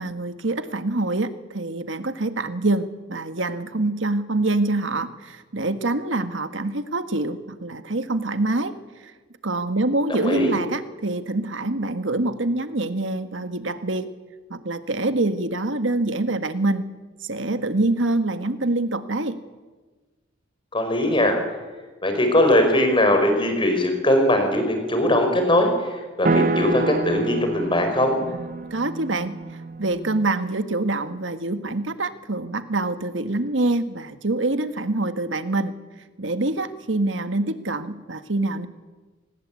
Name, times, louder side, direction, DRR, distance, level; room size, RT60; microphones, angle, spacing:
voice 1, 0.0-8.7 9.0-9.1 9.4-14.1 14.5-16.9 17.2-19.4 28.3-29.3 29.8-35.7 36.2-38.7, right 2 dB, 75° right, 10 dB, 1.7 m, -25 dB
voice 2, 10.1-10.5 20.7-21.4 22.0-28.1, left 1 dB, 25° left, 5 dB, 5.2 m, -20 dB
sound 1, 26.2-30.4, right 2 dB, 45° right, 0.9 m, -27 dB
26.5 x 20.5 x 8.6 m, 1.3 s
head